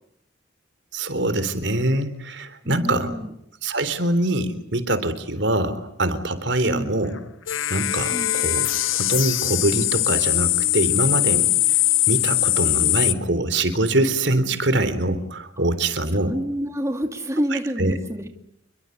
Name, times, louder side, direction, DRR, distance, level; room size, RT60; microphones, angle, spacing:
voice 1, 0.9-3.1 3.6-7.1 7.7-8.7 8.9-11.8 12.1-16.3 17.5-18.0, right 1 dB, 65° right, 13 dB, 3.8 m, -24 dB
voice 2, 2.6-3.3 6.6-7.0 8.1-8.3 15.6-15.7 16.3-18.3, equal, 15° right, 5 dB, 2.5 m, -28 dB
sound 1, 7.2-7.3 7.5-13.1, left 16 dB, 80° left, 1.3 m, -21 dB
29.5 x 23.5 x 8.2 m, 0.77 s
head